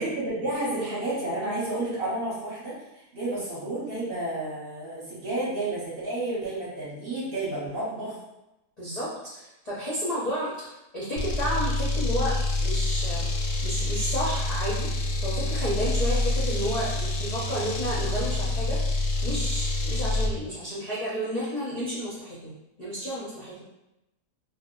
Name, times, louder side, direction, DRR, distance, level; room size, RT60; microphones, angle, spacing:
voice 1, 0.0-8.2, right 1 dB, 45° right, -8 dB, 0.9 m, -31 dB
voice 2, 8.8-13.3 13.6-14.9 15.2-18.8 19.2-22.5 22.8-23.6, equal, 40° left, -9 dB, 0.5 m, -31 dB
sound 1, 11.2-20.4, left 2 dB, 65° left, 0.9 m, -27 dB
2.6 x 2.1 x 3.7 m, 0.91 s
omnidirectional pair, 1.7 m